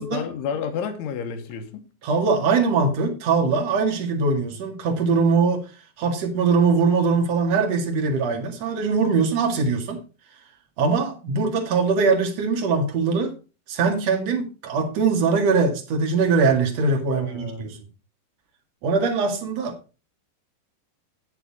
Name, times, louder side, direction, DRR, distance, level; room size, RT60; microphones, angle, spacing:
voice 1, 0.1-1.9 17.1-17.7, left 6 dB, 80° left, 3.6 m, -31 dB
voice 2, 2.0-5.6 6.0-10.0 10.8-13.3 13.7-17.8 18.8-19.7, right 4 dB, 50° right, 2.2 m, -22 dB
9.7 x 9.4 x 4.1 m
omnidirectional pair, 5.6 m